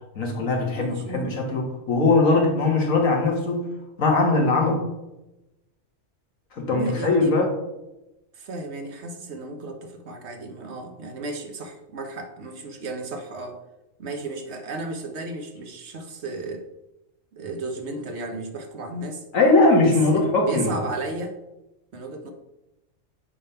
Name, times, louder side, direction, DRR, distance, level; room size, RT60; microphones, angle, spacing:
voice 1, 0.1-3.7 4.0-4.8 6.5-7.5 19.3-20.8, left 3 dB, 85° left, 0 dB, 1.9 m, -20 dB
voice 2, 0.8-1.3 6.6-7.4 8.3-13.6 14.0-16.6 17.3-19.2 19.8-21.4 21.9-22.3, right 3 dB, 60° right, 5 dB, 1.2 m, -34 dB
8.6 x 3.5 x 5.6 m, 0.97 s
omnidirectional pair, 1.3 m